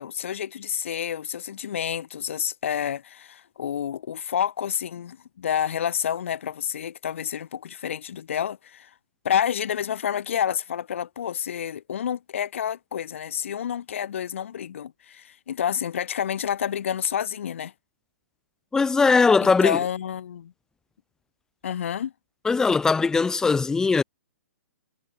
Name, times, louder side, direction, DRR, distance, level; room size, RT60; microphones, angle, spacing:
voice 1, 0.0-8.9 9.2-17.7 19.4-20.5 21.6-22.1, left 9 dB, 60° left, 1.1 m, -29 dB
voice 2, 18.7-19.8 22.4-24.0, left 4 dB, 5° left, 1.0 m, -20 dB
figure-of-eight pair, 125°, 8 cm